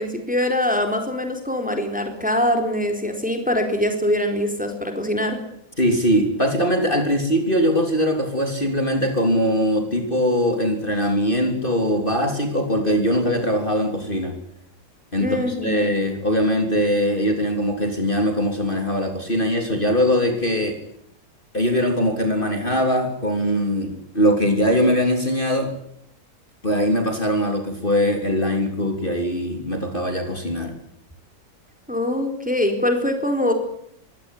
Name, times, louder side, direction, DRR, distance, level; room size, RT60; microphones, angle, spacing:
voice 1, 0.0-5.4 15.2-15.8 31.9-33.5, left 1 dB, 5° right, 5 dB, 4.1 m, -23 dB
voice 2, 5.8-14.4 15.1-20.8 21.5-25.7 26.6-30.7, equal, 30° left, 4 dB, 3.6 m, -21 dB
24.0 x 17.0 x 10.0 m, 0.71 s
omnidirectional pair, 1.9 m